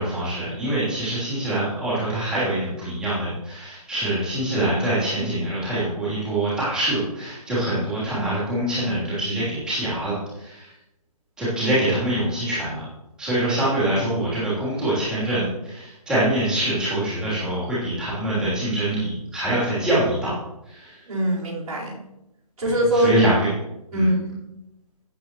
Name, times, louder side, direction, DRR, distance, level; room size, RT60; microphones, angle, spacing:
voice 1, 0.0-10.7 11.4-12.8 13.2-20.4 20.6-21.0 22.9-23.5 23.9-24.1, right 1 dB, 5° right, -11 dB, 3.2 m, -24 dB
voice 2, 21.1-22.0 22.6-23.1 23.9-24.4, right 1 dB, 65° right, -4 dB, 4.3 m, -23 dB
17.0 x 7.9 x 3.1 m, 0.91 s
hypercardioid pair, 165°, 19 cm